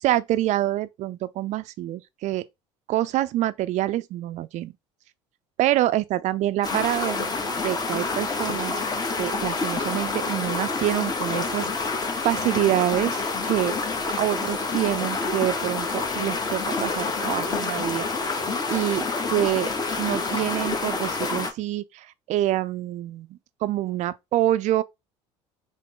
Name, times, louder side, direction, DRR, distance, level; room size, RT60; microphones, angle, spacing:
voice 1, 0.0-2.4 2.9-4.7 5.6-7.3 7.6-8.9 9.2-12.0 12.2-13.8 14.2-18.4 18.7-19.7 20.0-24.8, right 14 dB, 55° right, 0.4 m, -26 dB
sound 1, 6.6-21.5, left 4 dB, 25° left, 1.0 m, -28 dB
3.6 x 2.1 x 3.7 m
hypercardioid pair, 70°, 15 cm